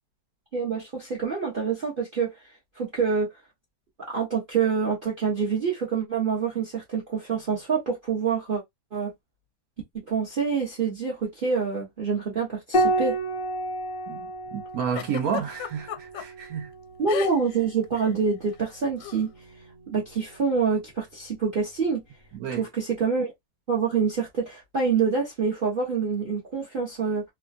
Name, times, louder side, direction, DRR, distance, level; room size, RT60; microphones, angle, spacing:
voice 1, 0.5-2.3 2.8-3.3 4.0-8.6 8.9-9.1 10.1-13.2 17.0-19.3 19.9-22.0 22.6-23.3 23.7-27.2, right 5 dB, 35° right, 1.0 m, -26 dB
Piano, 12.7-17.6 19.2-20.0, right 1 dB, 40° left, 0.8 m, -30 dB
voice 2, 14.1-16.7 22.3-22.7, right 7 dB, 65° right, 1.0 m, -31 dB
Giggle, 14.9-16.2 17.1-17.6 17.8-18.1 19.0-19.2, left 11 dB, 90° left, 1.3 m, -33 dB
3.3 x 2.2 x 2.4 m
omnidirectional pair, 1.9 m